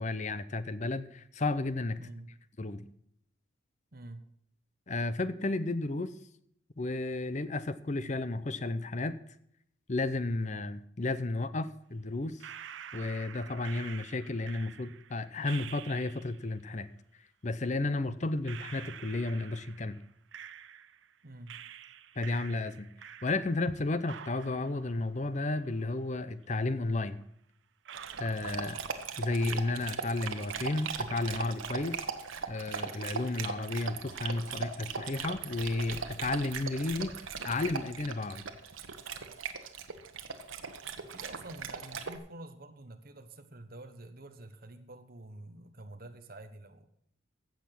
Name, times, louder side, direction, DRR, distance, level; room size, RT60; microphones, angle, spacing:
voice 1, 0.0-2.0 2.6-2.9 4.9-6.1 6.8-9.2 9.9-12.4 12.9-16.9 17.4-20.0 22.2-22.9 23.2-27.2 28.2-28.8 29.2-32.0 32.5-37.2 37.4-38.4, left 2 dB, 35° left, 14 dB, 0.7 m, -33 dB
voice 2, 2.0-2.3 3.9-4.2 21.2-21.5 41.0-46.9, right 1 dB, 50° right, 7 dB, 1.2 m, -48 dB
sound 1, 12.4-16.5 17.6-17.7 18.4-21.1 21.5-23.7 24.0-26.1 26.4-26.5 27.2-27.3 27.8-29.2 29.4-30.0, right 9 dB, 70° right, 0.6 m, -48 dB
Dog, 27.9-42.2, right 6 dB, 85° right, 1.2 m, -39 dB
15.5 x 7.0 x 6.0 m, 0.73 s
head